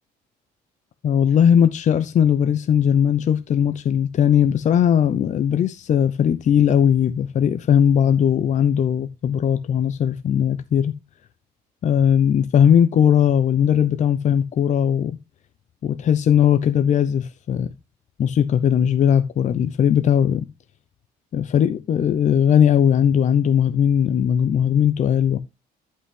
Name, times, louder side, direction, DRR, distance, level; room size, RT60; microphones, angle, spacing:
voice 1, 1.0-10.9 11.8-15.2 15.8-17.7 18.2-20.5 21.3-25.4, left 8 dB, 45° left, 0.8 m, -18 dB
11.5 x 5.5 x 3.8 m
cardioid pair, 110°, 17 cm